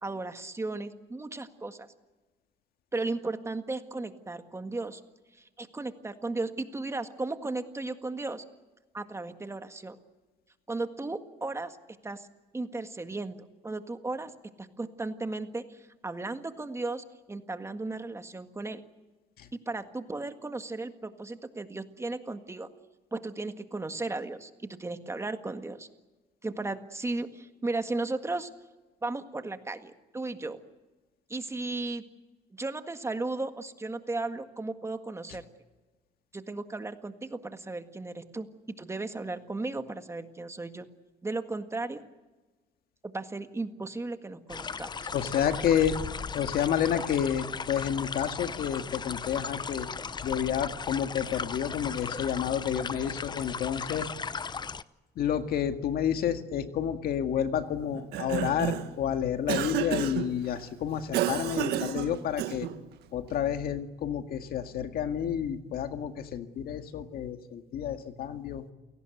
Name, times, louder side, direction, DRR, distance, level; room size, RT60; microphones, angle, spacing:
voice 1, 0.0-1.9 2.9-5.0 5.4-8.4 8.9-10.0 10.7-11.8 12.0-12.3 12.5-13.4 13.6-14.3 14.6-18.8 19.5-22.7 23.1-25.9 26.4-28.5 29.0-30.6 31.3-32.0 32.5-35.5 36.3-38.5 38.8-40.8 41.2-42.0 43.0-44.9, right 2 dB, 15° right, 8 dB, 1.8 m, -35 dB
sound 1, 44.5-54.8, left 5 dB, 25° left, 0.7 m, -37 dB
voice 2, 45.1-45.9 46.3-49.9 50.2-54.1 55.2-62.7 63.1-68.6, left 9 dB, 65° left, 7 dB, 2.0 m, -30 dB
Cough, 57.9-59.0 59.5-60.3 61.1-62.8, right 10 dB, 80° right, 1.8 m, -30 dB
29.0 x 18.0 x 7.9 m, 1.2 s
cardioid pair, 110°, 17 cm